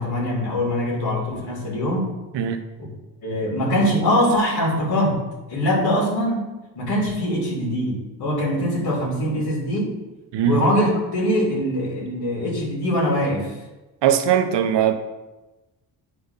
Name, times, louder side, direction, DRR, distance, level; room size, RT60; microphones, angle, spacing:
voice 1, 0.0-2.1 2.8-2.9 3.2-5.2 5.5-6.5 6.8-9.9 10.4-13.6, equal, 50° left, -6 dB, 3.0 m, -22 dB
voice 2, 14.0-14.9, right 9 dB, 60° right, 7 dB, 1.0 m, -19 dB
9.7 x 3.4 x 5.7 m, 1.1 s
hypercardioid pair, 60°, 49 cm